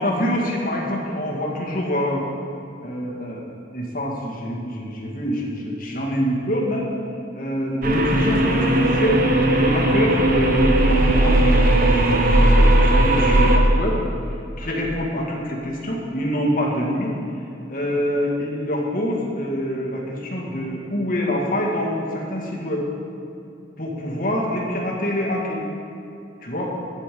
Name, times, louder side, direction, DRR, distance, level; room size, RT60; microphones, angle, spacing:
voice 1, 0.0-2.2 2.8-3.5 3.7-6.9 7.3-9.2 9.5-12.1 12.4-14.0 14.6-17.1 17.7-22.9 23.8-25.6 26.4-26.7, equal, 45° left, -2 dB, 2.0 m, -25 dB
sound 1, 7.8-13.6, right 1 dB, 50° right, 1.1 m, -17 dB
11.5 x 9.7 x 5.3 m, 2.6 s
head